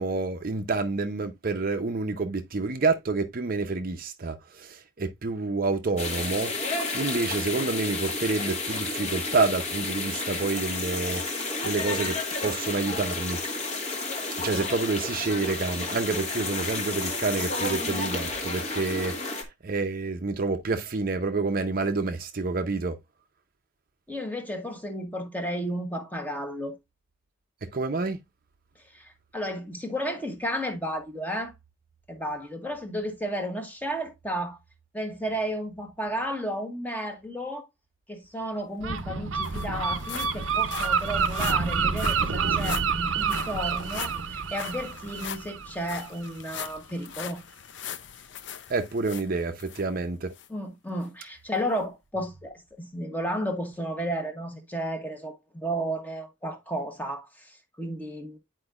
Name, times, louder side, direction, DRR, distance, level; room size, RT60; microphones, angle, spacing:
voice 1, 0.0-6.5 6.9-11.2 11.6-12.2 12.4-13.4 14.4-19.2 19.6-23.0 27.6-28.2 48.7-50.3, right 3 dB, 45° right, 0.6 m, -28 dB
sound 1, 6.0-19.4, left 3 dB, 35° left, 1.2 m, -31 dB
voice 2, 24.1-26.7 28.9-31.5 32.1-34.6 34.9-37.6 38.1-47.4 50.5-58.4, equal, 10° left, 1.0 m, -33 dB
sound 2, 38.6-38.7 39.0-49.8 50.3-50.5 51.0-51.1, left 8 dB, 65° left, 0.5 m, -41 dB
Gull seagull, 38.8-46.3, right 5 dB, 85° right, 0.7 m, -28 dB
9.7 x 4.5 x 2.3 m
head